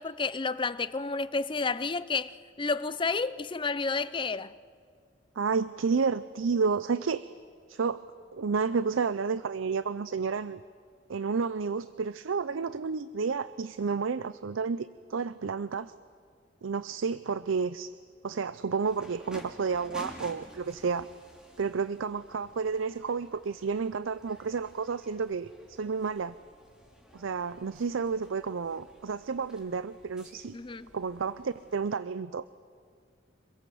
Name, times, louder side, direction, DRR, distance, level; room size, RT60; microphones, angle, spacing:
voice 1, 0.0-4.5 30.5-30.9, left 4 dB, 25° left, 0.6 m, -31 dB
voice 2, 5.4-7.2 7.7-8.0 8.3-10.6 11.1-15.9 16.6-17.9 18.2-21.1 21.6-26.4 27.1-30.6 30.9-32.4, right 5 dB, 90° right, 0.5 m, -31 dB
sound 1, 18.8-32.0, equal, 5° right, 2.8 m, -52 dB
25.5 x 22.0 x 7.7 m
head